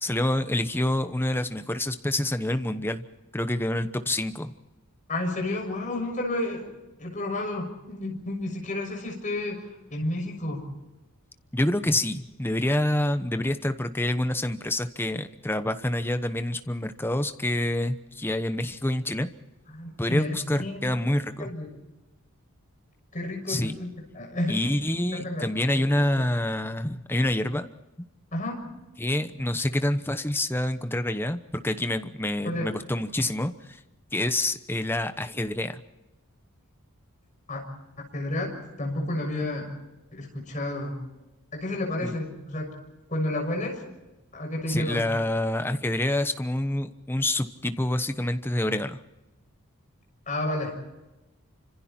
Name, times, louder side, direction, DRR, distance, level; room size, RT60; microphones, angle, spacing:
voice 1, 0.0-3.0 3.3-4.5 11.5-19.3 20.0-21.5 23.5-23.8 24.5-27.7 29.0-33.5 34.1-35.8 42.0-42.1 44.7-49.0, left 1 dB, 10° left, 9 dB, 1.0 m, -27 dB
voice 2, 5.1-6.6 7.0-9.6 9.9-10.7 19.7-20.9 21.4-21.7 23.1-23.9 24.1-24.6 25.1-25.5 26.0-26.3 28.3-28.7 32.4-32.7 37.5-37.7 38.1-39.7 40.1-40.9 41.5-42.7 43.1-43.8 44.3-45.1 50.3-50.8, left 1 dB, 35° left, 1 dB, 6.6 m, -31 dB
29.0 x 26.0 x 4.4 m, 1.0 s
head